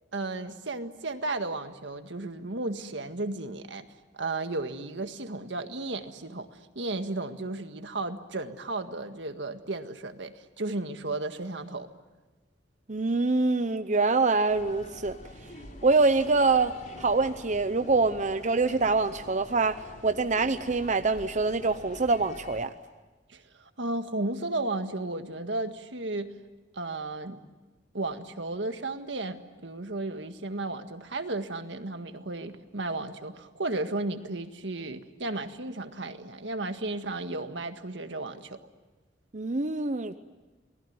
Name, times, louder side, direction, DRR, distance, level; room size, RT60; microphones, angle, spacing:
voice 1, 0.1-3.8 4.1-6.5 6.7-11.9 23.3-26.3 26.7-27.4 27.9-38.6, right 2 dB, 80° right, 8 dB, 1.8 m, -34 dB
voice 2, 12.9-15.2 15.8-19.8 20.0-22.7 39.3-40.1, right 3 dB, 40° right, 9 dB, 0.8 m, -25 dB
sound 1, 14.5-22.6, left 1 dB, 45° left, 3.6 m, -47 dB
29.0 x 20.0 x 9.5 m, 1.2 s
head